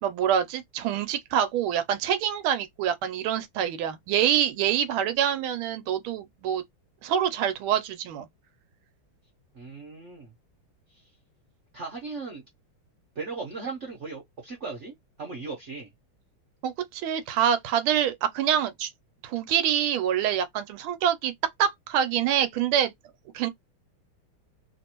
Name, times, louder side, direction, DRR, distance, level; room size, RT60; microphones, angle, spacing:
voice 1, 0.0-6.6 7.0-8.3 16.6-18.9 19.2-21.3 21.6-22.9 23.3-23.5, right 9 dB, 80° right, 1.4 m, -26 dB
voice 2, 9.5-10.3 10.9-11.0 11.7-12.4 13.1-14.9 15.2-15.9, right 4 dB, 50° right, 0.9 m, -37 dB
3.2 x 2.6 x 2.9 m
omnidirectional pair, 2.3 m